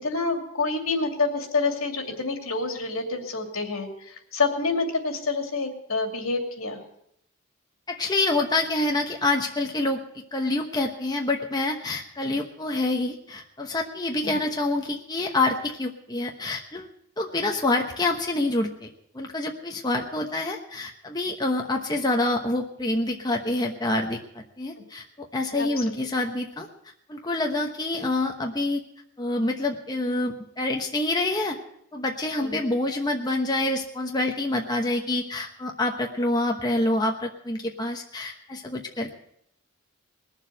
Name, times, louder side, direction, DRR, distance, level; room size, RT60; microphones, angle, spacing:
voice 1, 0.0-6.8 12.2-12.4 14.2-14.4 25.5-25.9 32.4-32.7, left 3 dB, 80° left, 4 dB, 2.6 m, -28 dB
voice 2, 7.9-16.9 17.2-18.9 19.1-26.7 27.1-28.8 29.2-31.6 31.9-39.2, left 2 dB, 20° left, 2 dB, 1.0 m, -27 dB
20.0 x 7.3 x 7.7 m, 0.74 s
head